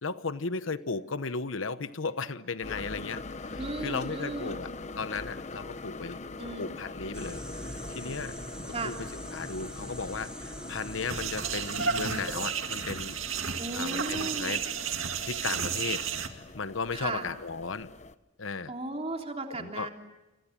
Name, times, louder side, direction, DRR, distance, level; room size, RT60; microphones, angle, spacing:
voice 1, 0.0-4.7 5.0-6.2 6.6-8.4 8.6-13.1 13.7-14.6 15.3-17.9 18.4-18.7 19.6-19.9, left 4 dB, 80° left, 13 dB, 1.0 m, -35 dB
sound 1, 2.6-18.1, left 3 dB, 35° left, 0.9 m, -43 dB
voice 2, 3.5-4.6 6.4-6.7 8.7-8.9 13.6-14.6 16.9-17.2 18.7-19.9, right 2 dB, 30° right, 2 dB, 3.4 m, -35 dB
sound 2, 7.1-12.5, right 1 dB, 5° right, 1.1 m, -43 dB
sound 3, 11.1-16.3, right 6 dB, 90° right, 2.2 m, -32 dB
29.5 x 26.0 x 7.5 m, 1.1 s
head